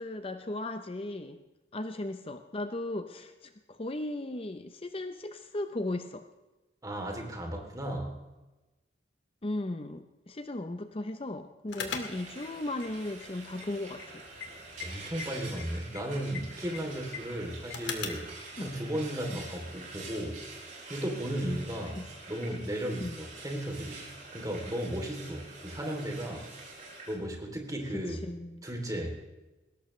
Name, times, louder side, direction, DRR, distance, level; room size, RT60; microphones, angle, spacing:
voice 1, 0.0-1.4 1.7-6.3 9.4-14.2 18.6-18.7 19.3-19.4 22.0-22.1 23.0-23.2 27.9-28.6, left 1 dB, 30° left, 8 dB, 0.7 m, -37 dB
voice 2, 6.8-8.2 14.8-18.3 18.6-20.4 20.9-26.5 27.1-28.3 28.6-29.2, right 1 dB, 20° right, 1 dB, 3.1 m, -35 dB
sound 1, 11.7-18.3, left 5 dB, 90° left, 2.2 m, -43 dB
Frying (food), 12.0-27.1, right 3 dB, 45° right, 6.6 m, -46 dB
21.0 x 17.5 x 3.3 m, 1.1 s
head